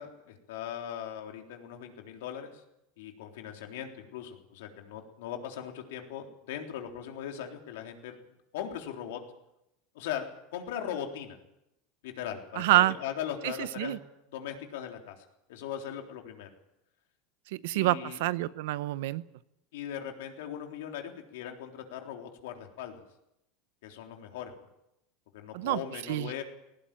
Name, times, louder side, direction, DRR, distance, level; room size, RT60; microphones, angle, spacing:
voice 1, 0.0-2.6 3.0-8.2 8.5-9.2 9.9-10.3 10.5-11.4 12.0-14.0 14.3-16.5 17.7-18.2 19.7-23.0 23.8-24.5 25.3-26.4, left 9 dB, 80° left, 3 dB, 3.6 m, -39 dB
voice 2, 12.6-13.0 13.4-14.0 17.5-19.2 25.5-25.8 26.1-26.3, right 17 dB, 75° right, 16 dB, 0.8 m, -27 dB
18.0 x 17.0 x 9.0 m, 0.86 s
supercardioid pair, 145°, 0 cm